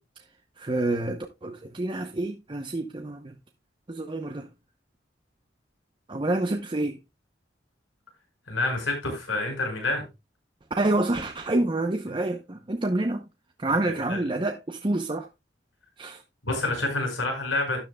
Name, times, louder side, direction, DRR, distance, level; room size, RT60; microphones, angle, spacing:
voice 1, 0.6-3.3 3.9-4.5 6.1-7.0 10.8-13.2 13.6-15.3 16.0-16.2, right 2 dB, 25° right, 0.7 m, -28 dB
voice 2, 8.5-10.0 13.7-13.8 14.1-14.2 16.4-17.8, left 2 dB, 90° left, 5.6 m, -28 dB
12.5 x 10.0 x 2.3 m
head